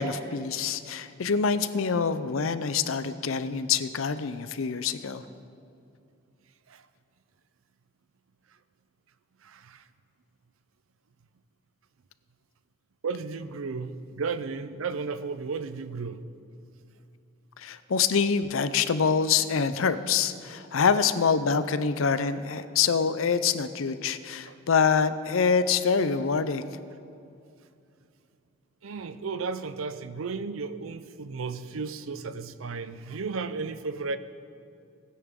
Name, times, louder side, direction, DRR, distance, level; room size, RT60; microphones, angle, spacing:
voice 1, 0.0-5.2 17.6-26.7, left 6 dB, 75° left, 13 dB, 0.6 m, -25 dB
voice 2, 9.4-9.9 13.0-16.2 24.5-24.6 28.8-34.2, right 4 dB, 80° right, 12 dB, 0.6 m, -34 dB
19.0 x 9.8 x 3.7 m, 2.5 s
head